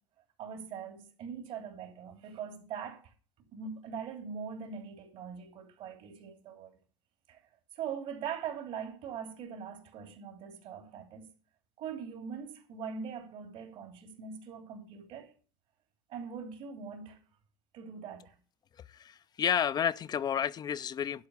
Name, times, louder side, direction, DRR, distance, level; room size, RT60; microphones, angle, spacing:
voice 1, 0.4-3.1 3.5-6.7 7.3-7.4 7.7-11.3 11.8-15.3 16.1-17.2 17.7-18.3, right 7 dB, 70° right, 2.8 m, -42 dB
voice 2, 18.9-21.3, left 8 dB, 40° left, 0.5 m, -31 dB
11.5 x 4.6 x 8.2 m
supercardioid pair, 85°, 10 cm